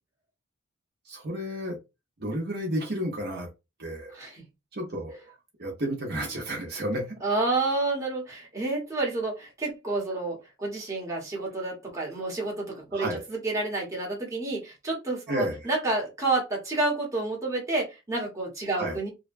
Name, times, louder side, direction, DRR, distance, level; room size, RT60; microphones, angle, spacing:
voice 1, 1.1-1.8 2.2-3.5 3.8-4.1 4.7-5.3 5.6-7.0 12.9-13.2 15.3-15.7 18.7-19.0, equal, 55° right, 0.9 m, -31 dB
voice 2, 4.1-4.4 7.2-19.1, right 2 dB, 15° right, 1.0 m, -29 dB
2.7 x 2.2 x 2.5 m
head